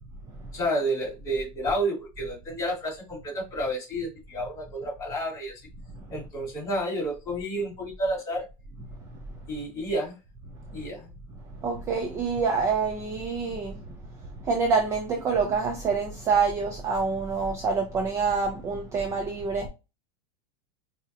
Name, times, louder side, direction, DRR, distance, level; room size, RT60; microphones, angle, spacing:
voice 1, 0.5-5.6 6.1-8.5 9.5-10.1 10.7-11.1, right 1 dB, 15° left, 1.3 m, -30 dB
voice 2, 11.6-13.8 14.4-19.7, right 5 dB, 15° right, 0.3 m, -26 dB
4.1 x 2.7 x 2.4 m
supercardioid pair, 170°, 19 cm